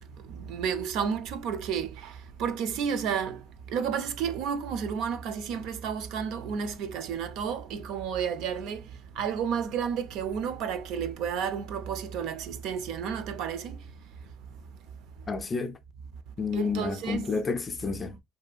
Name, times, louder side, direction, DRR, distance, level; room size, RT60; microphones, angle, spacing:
voice 1, 0.3-2.1 2.4-3.4 3.7-8.8 9.2-13.8 16.5-17.3, right 7 dB, 70° right, 0.4 m, -31 dB
voice 2, 15.3-15.8 16.4-18.2, left 5 dB, 25° left, 0.4 m, -30 dB
2.7 x 2.4 x 2.3 m
cardioid pair, 115°, 0 cm